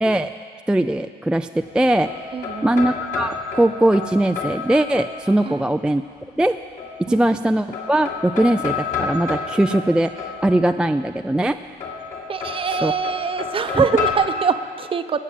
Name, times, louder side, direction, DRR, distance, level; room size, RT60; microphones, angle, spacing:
voice 1, 0.0-0.3 0.7-2.1 2.6-6.0 6.4-6.6 7.0-11.6 12.8-12.9 13.8-13.9, right 1 dB, 5° right, 8 dB, 0.3 m, -20 dB
sound 1, 1.6-5.6 6.8-7.4 7.7-10.9 11.8-14.1, left 6 dB, 50° left, 2.4 m, -30 dB
voice 2, 2.3-2.7 5.4-5.6 7.1-7.2 12.3-15.2, right 6 dB, 30° right, 10 dB, 0.7 m, -23 dB
19.0 x 7.3 x 8.5 m, 2.2 s
cardioid pair, 110°, 17 cm